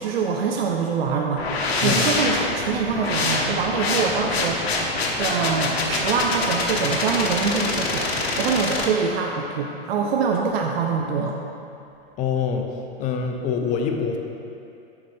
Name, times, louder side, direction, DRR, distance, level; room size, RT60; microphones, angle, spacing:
voice 1, 0.0-11.4, right 5 dB, 70° right, 1 dB, 0.6 m, -25 dB
sound 1, 1.4-8.9, left 3 dB, 80° left, 1.0 m, -25 dB
voice 2, 12.2-12.7 13.0-14.2, left 6 dB, 25° left, 3 dB, 0.5 m, -25 dB
7.1 x 5.1 x 3.3 m, 2.6 s
hypercardioid pair, 115°, 31 cm